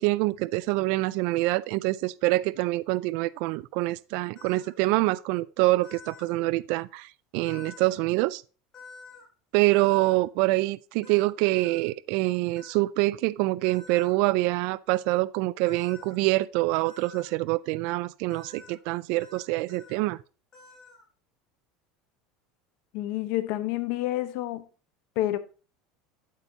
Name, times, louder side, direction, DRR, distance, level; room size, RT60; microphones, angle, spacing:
voice 1, 0.0-8.4 9.5-20.2, right 20 dB, 65° right, 0.3 m, -25 dB
sound 1, 4.4-4.7 5.8-6.4 7.5-8.0 8.7-9.3 9.7-10.2 11.0-11.8 12.6-12.8 13.6-14.1 15.7-16.1 16.9-17.3 18.3-18.8 19.2-19.4 19.7-20.0 20.5-21.0, left 4 dB, 30° left, 4.2 m, -48 dB
voice 2, 22.9-24.7 25.2-25.4, left 15 dB, 65° left, 0.9 m, -28 dB
8.4 x 8.1 x 2.8 m
supercardioid pair, 140°, 2 cm